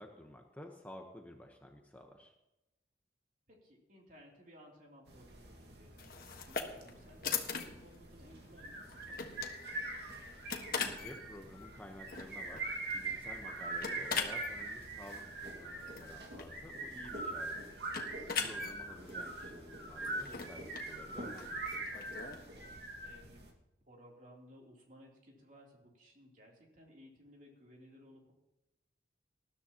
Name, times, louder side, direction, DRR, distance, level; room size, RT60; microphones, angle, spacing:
voice 1, 0.0-2.3 10.7-12.6 12.9-17.5 18.0-21.7, left 1 dB, 10° left, 2 dB, 1.0 m, -52 dB
voice 2, 3.5-9.9 18.3-18.9 23.0-23.4 23.9-28.3, equal, 45° right, -2 dB, 3.2 m, -59 dB
sound 1, 5.1-23.5, right 2 dB, 65° right, 1.9 m, -43 dB
sound 2, 6.0-22.5, left 6 dB, 55° left, 1.5 m, -43 dB
20.0 x 13.0 x 3.0 m, 0.94 s
head